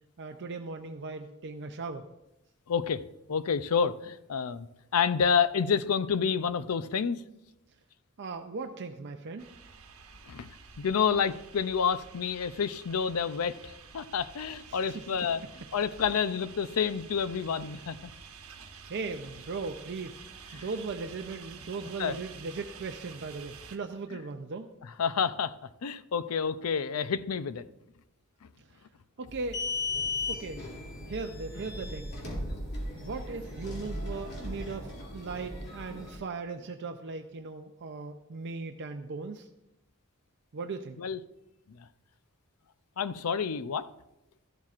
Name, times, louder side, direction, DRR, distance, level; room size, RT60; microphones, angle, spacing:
voice 1, 0.2-2.0 8.2-9.5 14.7-15.0 18.9-20.2 20.5-24.7 29.2-29.7 30.3-30.6 31.1-32.1 33.0-39.5 40.5-41.0, right 4 dB, 55° right, 5 dB, 0.5 m, -38 dB
voice 2, 2.7-3.0 3.3-4.7 4.9-7.2 10.3-10.5 10.8-18.1 20.5-20.6 22.0-22.2 24.1-24.2 24.8-25.5 25.8-27.6 41.0-41.2 41.7-41.9 43.0-43.8, left 6 dB, 85° left, 14 dB, 0.5 m, -29 dB
sound 1, 9.4-23.8, right 5 dB, 70° right, 1.2 m, -49 dB
sound 2, 29.3-36.2, left 2 dB, 50° left, 2.6 m, -36 dB
13.5 x 11.5 x 2.5 m, 0.90 s
head